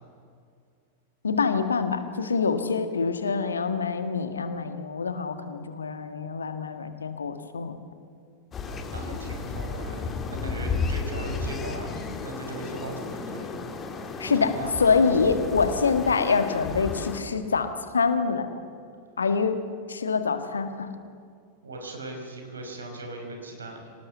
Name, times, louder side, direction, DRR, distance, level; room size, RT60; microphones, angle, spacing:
voice 1, 1.2-7.8 14.2-18.5 19.2-19.6 19.9-20.9, left 5 dB, 75° left, 9 dB, 1.6 m, -25 dB
sound 1, 8.5-17.2, left 4 dB, 25° left, 2.4 m, -33 dB
voice 2, 8.7-13.5 14.2-14.7 21.6-23.9, right 1 dB, 70° right, 3 dB, 5.1 m, -39 dB
26.0 x 18.5 x 7.0 m, 2.3 s
figure-of-eight pair, 90°, 0 cm